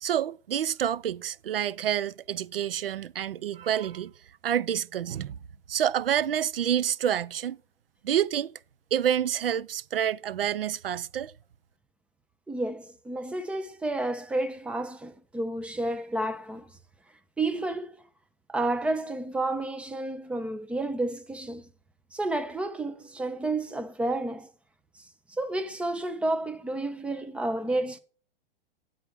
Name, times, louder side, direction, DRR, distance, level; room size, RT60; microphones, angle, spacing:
voice 1, 0.0-4.1 4.4-5.4 5.7-7.6 8.0-8.5 8.9-11.3, right 10 dB, 75° right, 0.4 m, -28 dB
voice 2, 12.5-16.7 17.4-18.0 18.5-21.7 22.1-24.5 25.3-28.0, right 2 dB, 5° right, 0.5 m, -31 dB
9.3 x 3.8 x 6.8 m
figure-of-eight pair, 105°, 29 cm